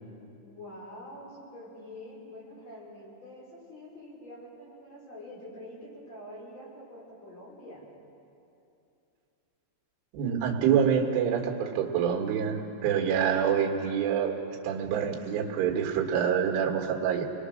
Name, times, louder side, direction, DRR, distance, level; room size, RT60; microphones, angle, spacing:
voice 1, 0.4-7.8, left 1 dB, 35° left, -5 dB, 6.6 m, -46 dB
voice 2, 10.1-14.4 14.6-17.3, right 8 dB, 85° right, 1 dB, 4.2 m, -26 dB
27.5 x 21.0 x 6.4 m, 2.8 s
omnidirectional pair, 5.4 m